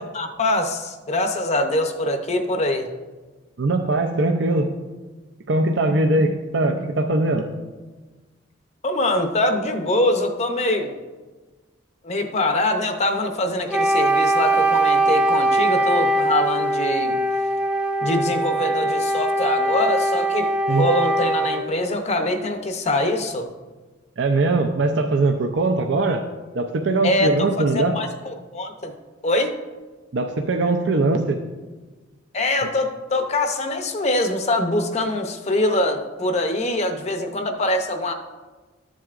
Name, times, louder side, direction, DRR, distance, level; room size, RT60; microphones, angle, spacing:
voice 1, 0.1-2.9 8.8-10.9 12.0-17.2 18.0-23.5 27.0-27.3 27.7-28.9 29.2-29.6 32.3-38.1, left 1 dB, 35° left, 6 dB, 0.7 m, -23 dB
voice 2, 3.6-4.7 5.5-7.5 20.7-20.9 24.2-26.2 26.5-28.0 30.1-31.4, right 2 dB, 70° right, 4 dB, 0.5 m, -21 dB
Wind instrument woodwind instrument, 13.7-21.7, right 2 dB, 5° right, 0.4 m, -21 dB
13.0 x 7.5 x 2.5 m, 1.3 s
head